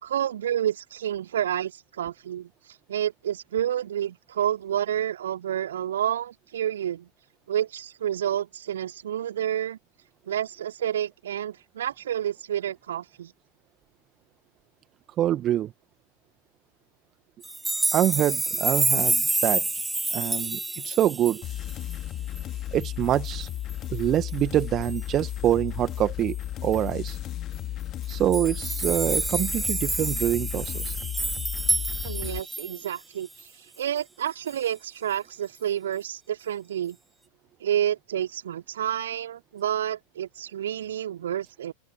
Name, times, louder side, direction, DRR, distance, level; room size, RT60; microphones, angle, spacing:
voice 1, 0.0-2.5 2.9-7.1 7.5-9.8 10.2-13.3 32.0-33.5 33.8-37.0 37.6-41.7, right 10 dB, 60° right, 3.2 m, -29 dB
voice 2, 15.2-15.7 17.9-19.6 20.1-21.4 22.7-23.5 23.9-26.3 26.6-27.2 28.1-30.9, right 12 dB, 30° right, 1.7 m, -25 dB
sound 1, 17.4-22.0 22.4-22.5 22.8-22.9 23.3-23.7 24.8-25.0 26.7-26.8 27.1-27.2 28.0-32.9 33.4-33.5, right 2 dB, 5° right, 1.0 m, -28 dB
sound 2, 21.4-32.4, left 13 dB, 30° left, 2.7 m, -34 dB
open air
figure-of-eight pair, 90°, 0 cm